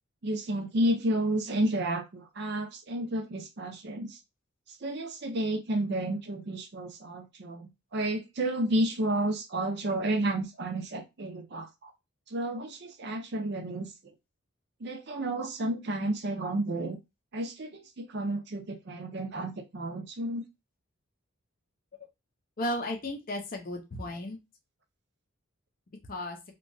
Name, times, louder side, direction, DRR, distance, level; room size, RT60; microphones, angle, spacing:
voice 1, 0.2-4.2 4.8-11.9 12.3-13.9 14.8-17.0 17.3-20.4, right 1 dB, 50° right, 0.5 m, -31 dB
voice 2, 22.6-24.4 26.1-26.4, left 1 dB, 40° left, 0.5 m, -34 dB
2.8 x 2.2 x 2.6 m
head